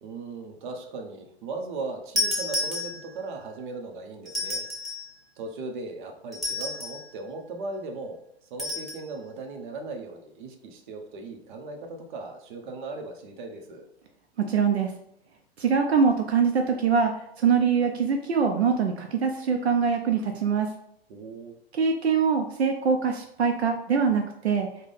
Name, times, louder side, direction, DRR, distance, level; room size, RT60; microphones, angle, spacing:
voice 1, 0.0-4.6 5.4-13.8 21.1-21.6, right 3 dB, 50° right, 3 dB, 0.8 m, -38 dB
sound 1, 2.2-3.3 4.3-5.1 6.3-7.1 8.6-9.0, left 2 dB, ahead, 0.9 m, -30 dB
voice 2, 14.4-14.9 15.6-20.7 21.7-24.7, right 6 dB, 80° right, 4 dB, 0.5 m, -23 dB
3.6 x 2.2 x 3.3 m, 0.72 s
hypercardioid pair, 110°, 32 cm